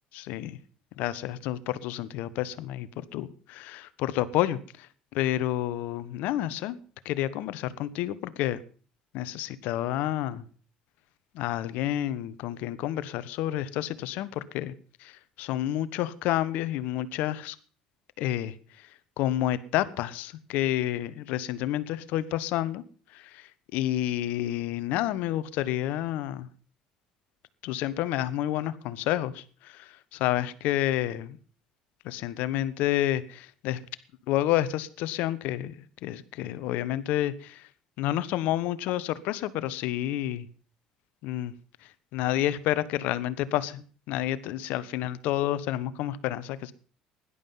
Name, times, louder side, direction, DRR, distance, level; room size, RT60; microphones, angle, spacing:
voice 1, 0.1-0.6 1.0-4.9 5.1-6.8 7.0-8.6 9.1-10.4 11.3-14.7 15.0-17.6 18.2-18.5 19.2-22.8 23.1-26.5 27.6-31.4 32.0-33.8 34.3-37.7 38.0-40.5 41.2-41.5 42.1-46.7, left 13 dB, 65° left, 16 dB, 1.1 m, -29 dB
16.5 x 11.5 x 5.6 m, 0.42 s
hypercardioid pair, 65°, 3 cm